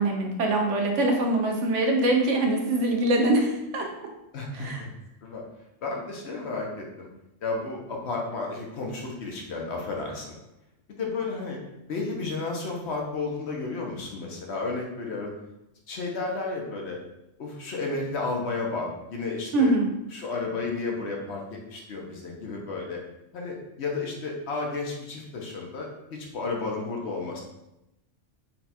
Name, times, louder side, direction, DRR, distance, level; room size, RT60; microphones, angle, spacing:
voice 1, 0.0-3.9 4.5-4.8 19.5-19.9, right 2 dB, 75° right, 2 dB, 1.0 m, -23 dB
voice 2, 4.3-4.7 5.2-5.4 5.8-7.1 7.4-10.3 11.0-11.6 11.9-15.3 15.9-17.0 17.4-19.7 20.1-23.0 23.3-27.4, left 3 dB, 65° left, 0 dB, 1.0 m, -32 dB
4.2 x 2.3 x 4.1 m, 0.89 s
omnidirectional pair, 1.3 m